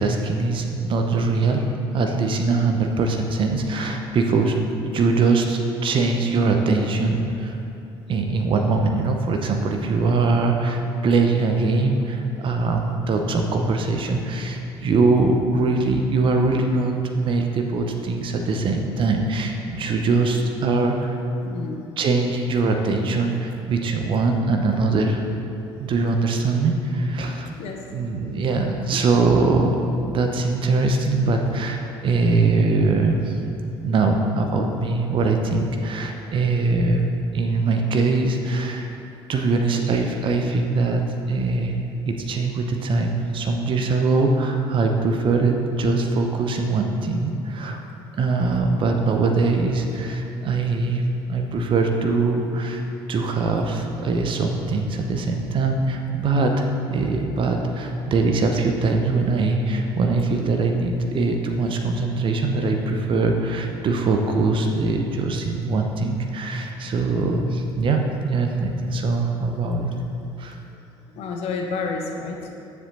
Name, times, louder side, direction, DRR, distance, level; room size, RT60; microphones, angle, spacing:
voice 1, 0.0-1.6 1.9-4.6 4.8-7.6 8.1-21.2 22.0-25.2 25.8-27.5 27.9-33.4 33.8-38.9 39.3-41.7 42.1-47.8 48.2-51.0 51.3-52.8 53.1-69.9 70.4-70.6, right 3 dB, 40° right, 3 dB, 0.9 m, -22 dB
voice 2, 21.4-21.8 22.7-22.8 23.9-24.0 27.6-27.8 28.3-28.4 36.1-36.2 60.9-61.1 69.8-69.9 71.2-72.7, left 4 dB, 50° left, 2 dB, 0.9 m, -31 dB
9.9 x 7.3 x 4.0 m, 2.8 s
figure-of-eight pair, 55°, 14 cm